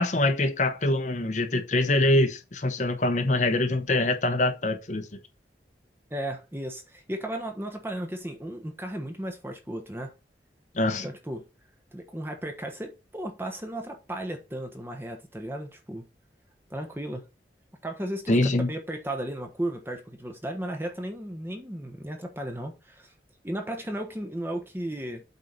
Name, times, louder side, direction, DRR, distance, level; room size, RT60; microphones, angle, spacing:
voice 1, 0.0-5.2 10.7-11.1 18.3-18.7, left 2 dB, 45° left, 1.0 m, -24 dB
voice 2, 6.1-10.1 11.0-11.4 11.9-16.1 16.7-17.2 17.8-23.1 23.4-25.2, right 1 dB, 15° right, 1.1 m, -35 dB
8.2 x 4.7 x 4.0 m
head